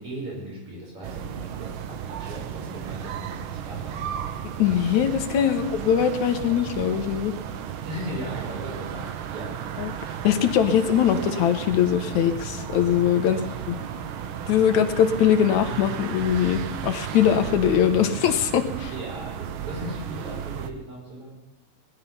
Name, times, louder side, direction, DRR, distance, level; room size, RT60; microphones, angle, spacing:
voice 1, 0.0-4.1 5.4-5.6 7.8-9.6 13.2-14.0 18.9-21.3, equal, 50° right, -3 dB, 6.9 m, -38 dB
sound 1, 1.0-20.7, right 9 dB, 70° right, 1.2 m, -34 dB
voice 2, 4.6-7.3 9.8-9.9 10.2-13.4 13.7-13.8 14.5-18.9, left 9 dB, 80° left, 8 dB, 2.4 m, -21 dB
19.0 x 11.5 x 5.6 m, 0.99 s
omnidirectional pair, 3.3 m